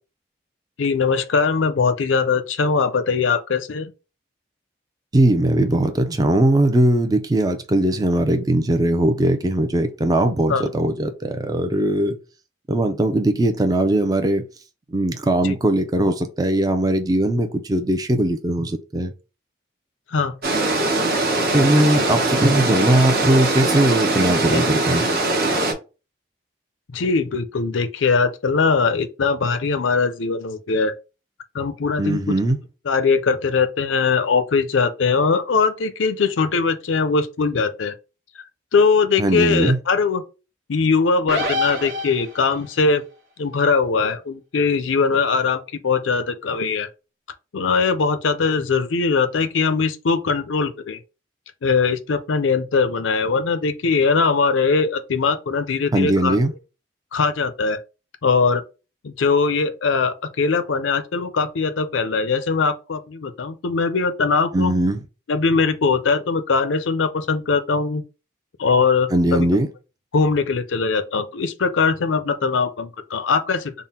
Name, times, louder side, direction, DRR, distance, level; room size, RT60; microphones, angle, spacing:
voice 1, 0.8-3.9 10.5-10.6 15.4-15.6 20.1-20.3 26.9-30.9 31.5-32.3 32.9-37.9 38.7-40.2 40.7-43.0 43.4-46.9 47.5-51.0 51.6-56.4 57.1-57.8 58.2-58.6 59.0-64.7 65.3-68.0 68.6-69.5 70.1-73.7, left 4 dB, 85° left, 0.5 m, -21 dB
voice 2, 5.1-12.2 12.7-14.4 14.9-19.1 21.5-25.1 32.0-32.6 39.2-39.8 55.9-56.5 64.5-65.0 69.1-69.7, right 1 dB, 20° right, 0.4 m, -19 dB
sound 1, 20.4-25.7, right 2 dB, 50° right, 1.0 m, -21 dB
sound 2, 41.3-42.7, left 1 dB, 75° right, 1.0 m, -26 dB
3.7 x 2.1 x 4.1 m
head